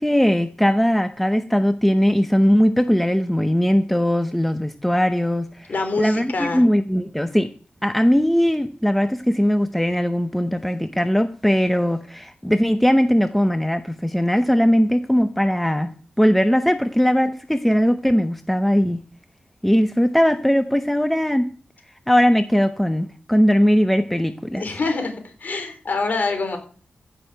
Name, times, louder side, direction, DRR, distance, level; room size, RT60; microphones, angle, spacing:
voice 1, 0.0-7.5 7.8-15.9 16.2-19.0 19.6-21.5 22.1-24.6, equal, 5° left, 9 dB, 0.7 m, -19 dB
voice 2, 5.7-6.6 24.5-25.2 25.4-26.6, left 3 dB, 50° left, 5 dB, 3.7 m, -25 dB
15.5 x 6.4 x 6.6 m, 0.41 s
wide cardioid pair, 140°, 4 cm